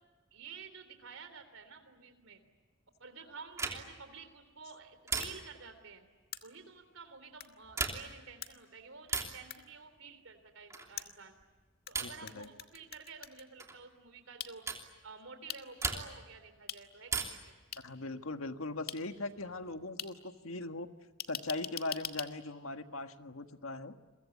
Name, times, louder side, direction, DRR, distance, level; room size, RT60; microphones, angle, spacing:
voice 1, 0.3-2.4 3.0-6.0 6.4-11.3 11.9-14.7 15.0-17.6, right 5 dB, 80° right, 9 dB, 3.3 m, -51 dB
sound 1, 3.5-4.1 5.1-5.7 7.6-8.3 9.1-9.5 10.7-11.0 11.9-12.3 13.6-13.8 14.7-14.9 15.8-16.3 17.1-17.6 19.0-19.7, right 4 dB, 15° right, 3.0 m, -38 dB
sound 2, 5.2-5.3 6.3-6.4 7.4-7.5 8.4-8.5 9.5-9.6 11.0-11.9 12.3-13.4 14.4-14.5 15.5-15.6 16.7-16.8 17.7-17.8 18.9-19.0 20.0-20.1 21.2-22.3, left 9 dB, 45° left, 1.9 m, -41 dB
voice 2, 12.0-12.5 17.8-20.9 21.3-23.9, left 2 dB, 90° left, 7 dB, 1.6 m, -40 dB
29.5 x 23.0 x 8.6 m, 1.4 s
head